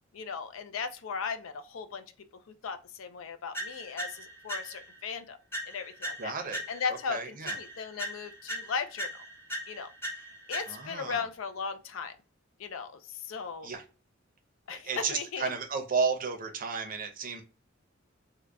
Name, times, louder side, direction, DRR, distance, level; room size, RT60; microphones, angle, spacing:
voice 1, 0.1-2.0 2.6-5.4 5.7-6.3 6.7-9.1 9.7-9.9 10.5-12.1 12.6-13.7 14.7-15.5, left 5 dB, 80° left, 0.5 m, -37 dB
sound 1, 3.5-5.0 5.5-7.1 7.5-11.1, right 1 dB, 10° left, 0.7 m, -39 dB
voice 2, 6.2-6.6 6.9-7.6 10.7-11.3 13.6-13.8 14.7-17.4, right 5 dB, 45° right, 0.6 m, -33 dB
3.7 x 2.2 x 3.3 m
head